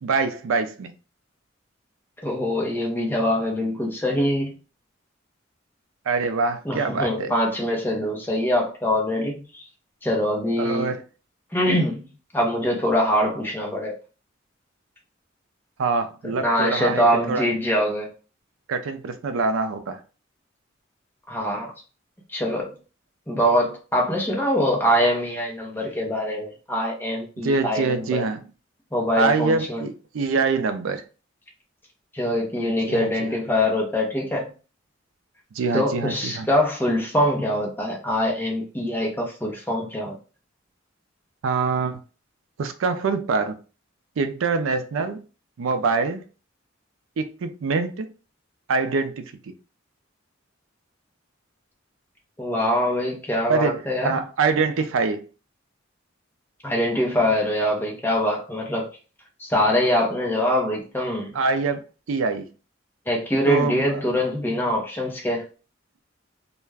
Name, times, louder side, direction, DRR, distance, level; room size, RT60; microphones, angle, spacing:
voice 1, 0.0-0.9 6.1-7.3 10.6-11.0 15.8-17.5 18.7-20.0 27.4-28.4 29.2-31.0 32.7-33.3 35.5-36.5 41.4-42.0 42.6-43.6 44.2-45.2 45.6-46.2 47.2-48.1 48.7-49.5 53.5-55.2 61.3-62.5 63.5-64.0, right 4 dB, 85° right, 0.4 m, -25 dB
voice 2, 2.2-4.5 6.6-9.6 10.0-10.9 11.5-12.1 12.3-13.9 16.3-18.1 21.3-21.7 22.3-22.7 23.3-28.2 28.9-29.8 32.1-34.5 35.7-40.2 52.4-54.2 56.6-58.9 59.4-61.4 63.1-65.5, equal, 10° left, 0.6 m, -23 dB
2.3 x 2.1 x 3.3 m
head